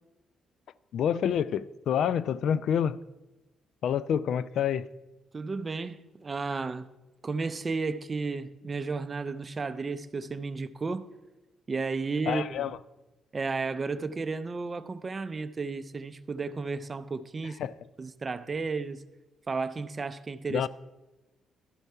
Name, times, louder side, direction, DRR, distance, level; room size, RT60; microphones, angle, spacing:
voice 1, 0.9-3.0 3.8-4.9 12.3-12.7 17.6-17.7 20.5-20.7, left 8 dB, 70° left, 0.3 m, -27 dB
voice 2, 5.3-6.9 7.2-11.1 11.7-12.7 13.3-17.6 18.0-19.0 19.5-20.7, right 4 dB, 30° right, 0.5 m, -33 dB
12.5 x 4.5 x 5.5 m
cardioid pair, 90°, 0 cm